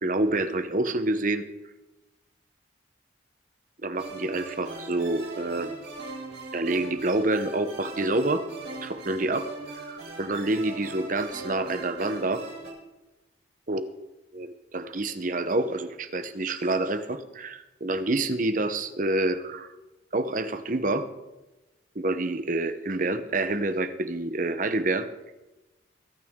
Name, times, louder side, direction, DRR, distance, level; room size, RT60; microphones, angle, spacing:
voice 1, 0.0-1.4 3.8-5.8 6.5-8.4 8.8-12.4 13.7-13.8 14.3-19.7 20.1-21.1 21.9-25.1, right 2 dB, 45° right, 10 dB, 0.9 m, -27 dB
sound 1, 3.9-12.7, right 3 dB, 65° right, 4.4 m, -40 dB
22.5 x 9.2 x 3.7 m, 1.1 s
head